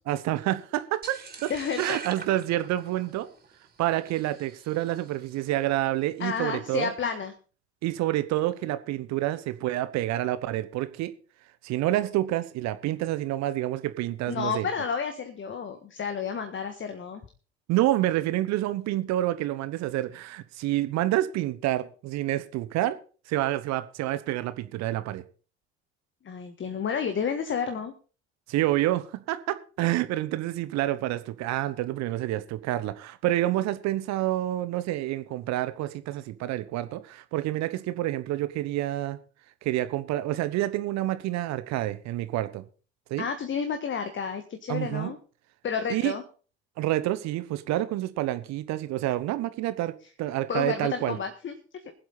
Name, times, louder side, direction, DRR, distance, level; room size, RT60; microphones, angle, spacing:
voice 1, 0.1-1.5 1.8-3.3 3.8-6.9 7.8-11.1 11.6-14.7 17.7-23.0 23.3-25.2 28.5-39.2 39.6-42.6 43.1-43.3 44.7-45.1 45.9-46.1 46.8-49.9 50.2-51.2, right 15 dB, 55° right, 1.1 m, -28 dB
sound 1, 1.0-5.3, right 5 dB, 25° right, 3.8 m, -44 dB
voice 2, 1.5-2.0 6.2-7.3 14.3-17.2 26.2-27.9 43.2-45.2 45.6-46.2 50.5-51.5, left 6 dB, 35° left, 1.6 m, -31 dB
21.5 x 7.8 x 4.1 m
figure-of-eight pair, 60°, 33 cm